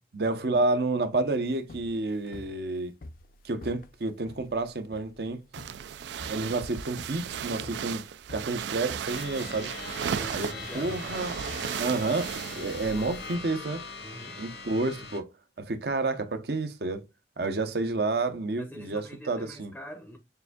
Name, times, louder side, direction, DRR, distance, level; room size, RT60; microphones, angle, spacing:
voice 1, 0.1-2.9 3.4-5.4 6.3-8.0 8.3-9.7 10.3-10.5 10.7-11.3 11.8-13.8 14.4-15.3 15.6-17.0 17.4-19.7, right 3 dB, 60° right, 0.7 m, -29 dB
sound 1, 1.4-13.6, left 2 dB, 50° left, 0.5 m, -48 dB
sound 2, 5.5-13.3, right 8 dB, 80° right, 0.3 m, -36 dB
sound 3, 9.0-15.2, left 4 dB, 70° left, 0.9 m, -41 dB
voice 2, 10.2-11.2 12.5-13.5 14.0-14.4 18.6-20.2, equal, 5° left, 0.6 m, -45 dB
6.7 x 2.6 x 2.3 m
head